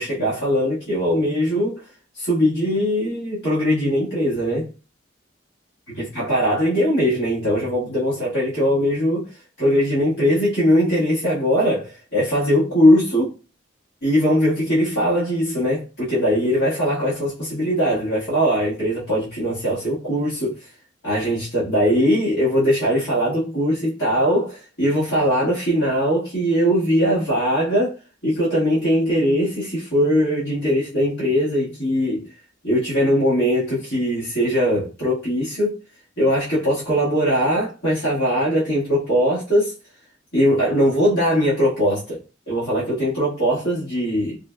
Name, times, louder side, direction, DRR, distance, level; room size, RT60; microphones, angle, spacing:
voice 1, 0.0-1.8 2.1-4.7 6.0-13.3 14.0-20.7 21.0-27.9 28.2-32.3 32.6-35.8 36.2-39.7 40.3-42.2 42.5-44.4, equal, 65° left, 1.5 m, -20 dB
3.8 x 2.2 x 2.3 m
head